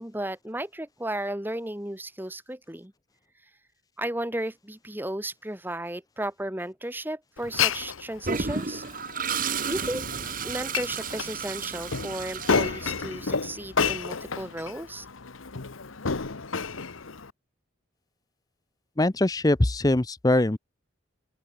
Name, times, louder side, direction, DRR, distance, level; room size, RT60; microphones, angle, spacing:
voice 1, 0.0-2.9 4.0-8.8 9.7-10.1 10.4-15.1, right 1 dB, 10° right, 1.5 m, -34 dB
Glass, 7.4-17.3, left 5 dB, 85° left, 1.2 m, -31 dB
Toilet flush, 8.2-13.3, right 5 dB, 45° right, 1.6 m, -32 dB
voice 2, 19.0-20.6, left 1 dB, 20° left, 0.6 m, -22 dB
open air
head